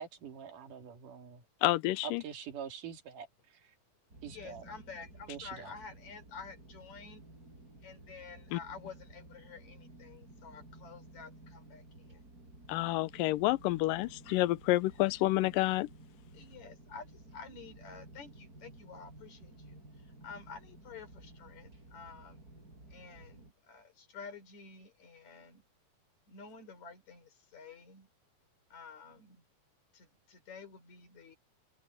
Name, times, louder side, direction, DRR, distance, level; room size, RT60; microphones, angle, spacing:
voice 1, 0.0-1.5 2.0-3.8 4.2-4.7 5.1-5.8, right 7 dB, 75° right, 3.8 m, -45 dB
voice 2, 1.6-2.2 8.5-8.6 12.7-15.9, left 18 dB, 90° left, 2.3 m, -29 dB
sound 1, 4.1-23.5, right 2 dB, 25° right, 7.7 m, -54 dB
voice 3, 4.3-7.2 7.5-12.2 16.3-19.8 20.2-22.4 22.9-25.6 26.3-28.1 28.7-29.4 29.9-31.4, left 5 dB, 60° left, 5.3 m, -50 dB
omnidirectional pair, 3.8 m